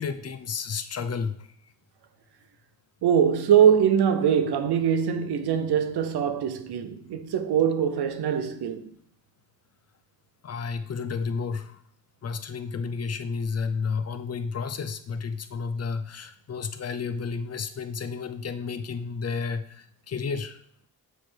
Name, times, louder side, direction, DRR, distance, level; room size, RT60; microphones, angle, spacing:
voice 1, 0.0-1.5 10.4-11.8 12.2-20.6, left 5 dB, 40° left, 0.5 m, -31 dB
voice 2, 3.0-8.9, right 8 dB, 75° right, 0.7 m, -22 dB
7.8 x 3.3 x 4.4 m
wide cardioid pair, 115°, 39 cm